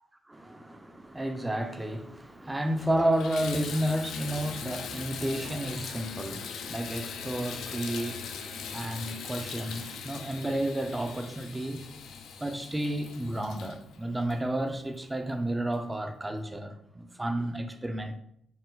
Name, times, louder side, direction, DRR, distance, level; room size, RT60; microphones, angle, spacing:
voice 1, 0.3-12.0 12.4-18.2, right 1 dB, 15° right, 0.4 m, -32 dB
Water tap faucet / Bathtub (filling or washing), 2.1-2.2 2.7-15.1 15.7-15.8 16.3-16.4, left 6 dB, 75° left, 0.4 m, -40 dB
sound 1, 2.7-3.3 5.0-6.3 7.7-7.8 8.2-10.5, right 2 dB, 65° right, 1.1 m, -56 dB
4.3 x 2.1 x 3.8 m
cardioid pair, 90°, 0 cm